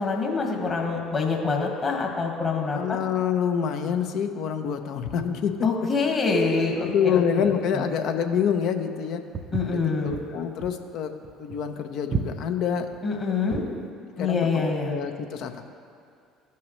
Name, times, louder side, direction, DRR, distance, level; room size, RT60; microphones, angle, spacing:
voice 1, 0.0-3.0 5.6-7.5 9.5-10.2 13.0-13.6 14.2-15.0, left 4 dB, 40° left, 0 dB, 1.7 m, -25 dB
voice 2, 2.7-5.7 6.8-9.2 9.6-11.1 11.4-12.9 14.0-15.7, left 7 dB, 60° left, 6 dB, 0.7 m, -27 dB
Walk footsteps, 9.3-13.8, right 5 dB, 40° right, 0.5 m, -33 dB
15.0 x 5.7 x 3.2 m, 2.4 s
hypercardioid pair, 60°, 0 cm